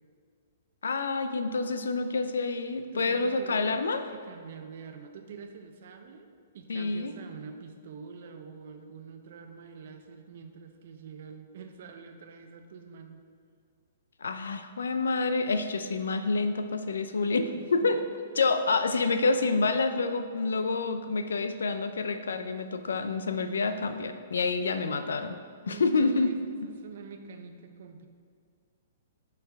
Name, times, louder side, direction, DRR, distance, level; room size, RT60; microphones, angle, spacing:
voice 1, 0.8-4.1 6.7-7.1 14.2-18.0 18.4-25.4 25.7-26.4, left 3 dB, 85° left, 9 dB, 0.4 m, -28 dB
voice 2, 2.9-3.7 4.1-13.2 17.5-18.1 18.4-18.5 25.6-28.1, right 5 dB, 60° right, 6 dB, 0.7 m, -46 dB
7.9 x 4.7 x 3.4 m, 2.2 s
hypercardioid pair, 130°, 0 cm